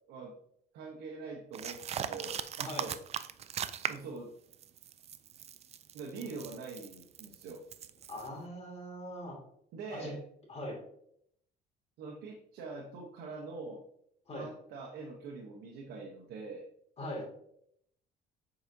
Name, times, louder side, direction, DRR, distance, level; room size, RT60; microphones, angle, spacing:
voice 1, 0.7-3.0 3.9-4.3 5.9-7.6 9.7-10.2 12.0-13.8 14.3-16.6, right 4 dB, 85° right, 0 dB, 1.0 m, -44 dB
sound 1, 1.5-4.2 4.5-8.3, right 9 dB, 40° right, 0.4 m, -39 dB
voice 2, 8.1-9.4 9.9-10.1 10.5-10.8 14.3-14.5 17.0-17.2, left 1 dB, 40° left, 0 dB, 2.4 m, -41 dB
7.0 x 4.9 x 2.7 m, 0.71 s
cardioid pair, 110°, 17 cm